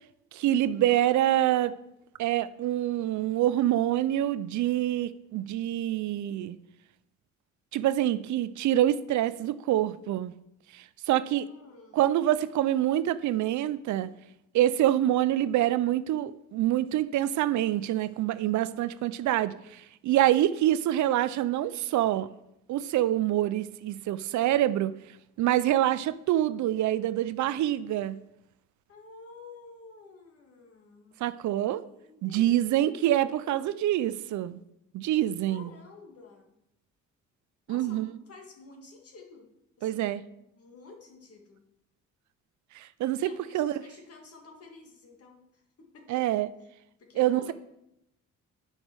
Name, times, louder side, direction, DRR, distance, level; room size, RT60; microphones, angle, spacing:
voice 1, 0.3-1.7 2.2-6.6 7.7-10.3 10.7-11.5 11.9-14.1 14.5-22.3 22.7-24.9 25.4-28.2 31.2-31.8 32.2-34.6 34.9-35.7 37.7-38.1 39.8-40.2 42.7-43.7 46.1-46.5 47.2-47.5, right 13 dB, 70° right, 0.5 m, -26 dB
voice 2, 11.4-12.0 28.9-31.2 31.8-33.7 35.5-36.5 37.7-39.5 39.8-40.1 40.5-41.6 43.2-46.3 47.0-47.5, left 3 dB, 50° left, 2.0 m, -51 dB
10.5 x 5.4 x 4.6 m
cardioid pair, 90°, 30 cm